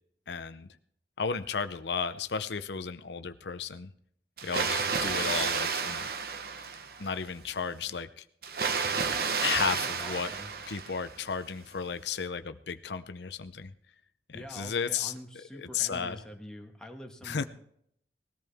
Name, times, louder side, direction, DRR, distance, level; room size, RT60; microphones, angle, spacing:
voice 1, 0.3-0.7 1.2-3.9 4.4-6.1 7.0-8.2 9.4-10.3 10.7-13.7 14.3-15.1 15.5-16.2 17.2-17.4, left 6 dB, 80° left, 11 dB, 0.7 m, -33 dB
Water, 4.4-7.2 8.4-11.2, right 5 dB, 60° right, 1.1 m, -31 dB
voice 2, 9.4-10.5 14.3-17.5, equal, 5° left, 2 dB, 1.7 m, -45 dB
20.0 x 14.0 x 3.5 m, 0.68 s
head